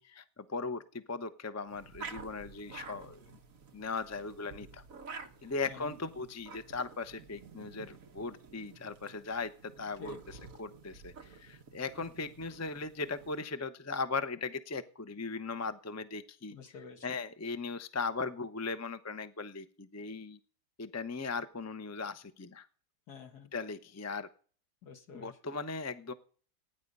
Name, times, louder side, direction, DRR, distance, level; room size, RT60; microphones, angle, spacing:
voice 1, 0.0-3.2 3.7-4.8 5.4-16.6 17.0-20.4 20.8-22.7 23.5-24.3 25.1-26.1, left 4 dB, 20° left, 11 dB, 0.4 m, -38 dB
sound 1, 1.7-13.4, right 4 dB, 55° right, 1.6 m, -50 dB
voice 2, 16.5-17.1 23.1-23.5 24.8-25.4, left 5 dB, 70° left, 5 dB, 2.2 m, -48 dB
15.0 x 10.0 x 5.4 m, 0.43 s
omnidirectional pair, 1.8 m